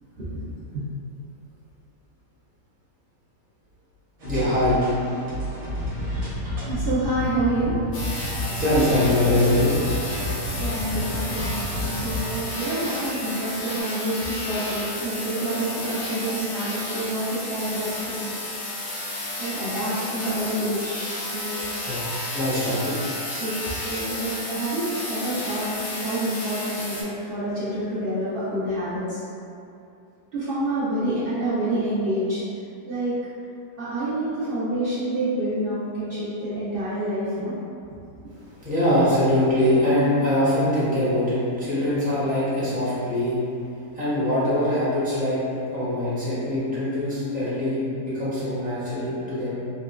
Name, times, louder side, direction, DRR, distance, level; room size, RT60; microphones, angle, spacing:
sound 1, 4.2-12.2, left 1 dB, 60° right, 1.4 m, -30 dB
voice 1, 4.3-4.8 8.6-9.7 11.7-11.8 21.8-23.0 38.4-43.3 43.9-45.4 45.7-49.6, left 1 dB, 5° right, -13 dB, 0.7 m, -23 dB
voice 2, 6.0-7.9 8.3-8.5 10.2-18.3 19.4-21.1 21.3-21.6 23.4-23.5 23.9-29.2 30.3-32.4 32.8-33.1 33.8-37.5, right 1 dB, 85° right, -11 dB, 0.5 m, -28 dB
sound 2, 7.9-27.0, left 1 dB, 55° left, 0.8 m, -32 dB
sound 3, 8.3-13.8, right 1 dB, 90° left, 1.5 m, -38 dB
3.9 x 2.3 x 2.3 m, 2.5 s
omnidirectional pair, 1.8 m